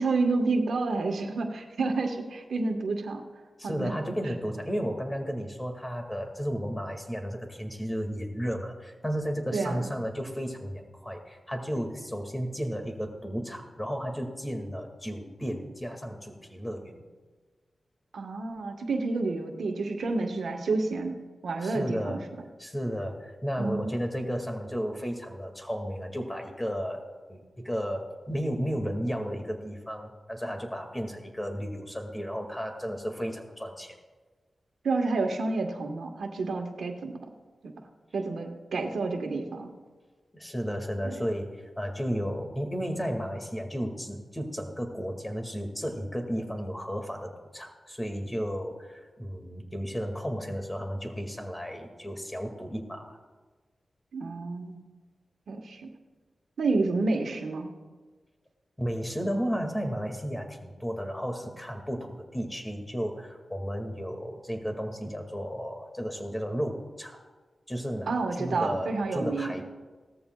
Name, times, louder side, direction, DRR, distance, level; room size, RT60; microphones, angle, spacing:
voice 1, 0.0-3.2 3.6-3.9 9.5-9.9 18.1-21.2 21.4-22.0 23.6-23.9 34.8-37.1 37.6-37.7 38.1-39.7 41.1-41.2 54.1-54.8 55.5-55.9 56.6-57.7 68.1-69.5, right 3 dB, 85° right, 4 dB, 1.3 m, -29 dB
voice 2, 3.6-17.0 21.6-22.3 22.6-27.0 27.3-34.0 40.3-53.2 58.8-67.2 67.7-69.6, equal, 15° left, 4 dB, 2.0 m, -33 dB
17.5 x 14.0 x 2.3 m, 1.4 s
cardioid pair, 55°, 0 cm